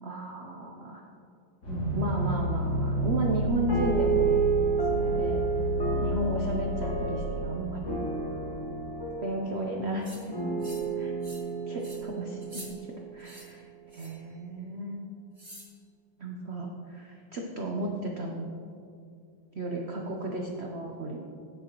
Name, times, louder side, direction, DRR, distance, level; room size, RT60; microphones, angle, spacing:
voice 1, 0.0-1.0 1.9-5.4 6.0-8.1 9.2-10.4 11.0-11.1 11.7-13.7 13.9-15.0 16.2-18.5 19.6-21.3, right 1 dB, 75° right, 0 dB, 0.6 m, -34 dB
sound 1, 1.6-8.8, left 1 dB, 60° left, 2.7 m, -31 dB
sound 2, 3.7-13.4, right 6 dB, 20° left, 0.7 m, -31 dB
sound 3, 10.0-10.2 10.6-10.9 11.2-11.5 11.8-12.0 12.4-12.7 13.2-13.5 13.9-14.2 15.4-15.7, right 1 dB, 15° right, 1.9 m, -46 dB
16.0 x 6.7 x 3.0 m, 2.4 s
omnidirectional pair, 2.2 m